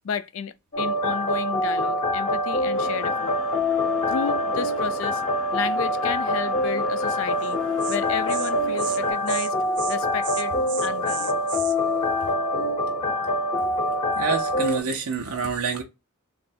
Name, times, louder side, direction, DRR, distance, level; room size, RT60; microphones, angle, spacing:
voice 1, 0.0-3.4 4.1-5.2 5.5-7.6 7.9-9.5 9.9-10.5 10.8-11.4, left 6 dB, 65° left, 0.4 m, -32 dB
sound 1, 0.7-14.8, left 1 dB, 35° left, 0.8 m, -25 dB
sound 2, 2.7-9.1, left 2 dB, 5° left, 0.6 m, -43 dB
Insect, 7.4-7.5 7.8-8.0 8.3-8.5 8.8-9.0 9.3-9.5 9.8-10.0 10.2-11.7, right 10 dB, 55° right, 0.5 m, -34 dB
voice 2, 14.2-15.8, right 5 dB, 85° right, 0.8 m, -27 dB
3.2 x 2.5 x 4.3 m
head